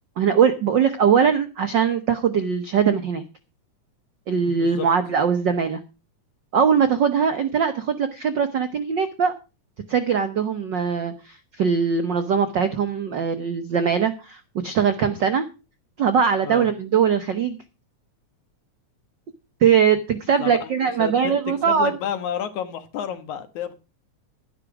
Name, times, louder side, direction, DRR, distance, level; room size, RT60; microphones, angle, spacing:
voice 1, 0.2-3.2 4.3-5.8 6.5-9.3 9.9-15.5 16.0-17.6 19.6-21.9, right 7 dB, 75° right, 1.0 m, -21 dB
voice 2, 4.6-4.9 16.4-16.7 20.4-21.4 21.6-23.7, left 9 dB, 75° left, 2.7 m, -31 dB
11.5 x 11.5 x 4.8 m
omnidirectional pair, 3.5 m